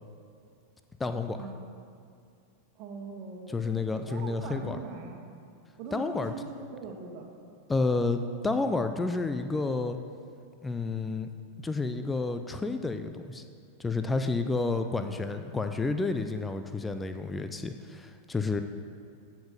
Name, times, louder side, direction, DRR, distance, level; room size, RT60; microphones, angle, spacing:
voice 1, 1.0-1.4 3.5-4.8 5.9-6.3 7.7-10.0 10.6-11.3 11.6-13.4 13.8-18.6, left 3 dB, 10° left, 8 dB, 0.5 m, -30 dB
voice 2, 2.7-3.7 3.9-5.2 5.8-7.3, right 4 dB, 40° right, 2 dB, 1.5 m, -41 dB
15.0 x 5.4 x 5.3 m, 2.3 s
figure-of-eight pair, 90°, 0 cm